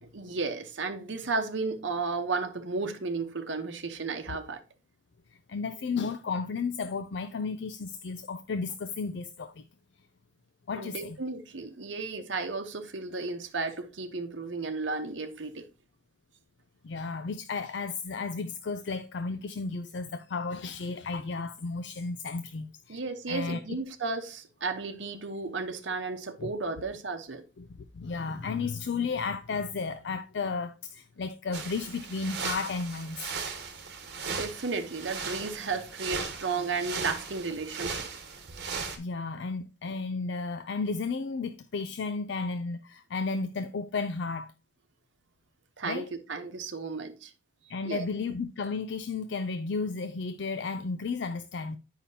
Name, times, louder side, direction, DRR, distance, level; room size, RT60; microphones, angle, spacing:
voice 1, 0.0-4.6 10.7-15.6 22.9-27.4 34.3-38.1 45.8-47.3 47.8-48.0, right 3 dB, 75° right, 0.9 m, -33 dB
voice 2, 5.5-9.6 10.7-11.2 16.8-23.8 26.4-26.5 27.6-27.7 27.9-33.3 39.0-44.5 45.8-46.1 47.7-51.8, left 4 dB, 65° left, 0.4 m, -33 dB
sound 1, 31.5-39.0, right 5 dB, 60° right, 1.3 m, -37 dB
8.3 x 5.7 x 2.7 m
head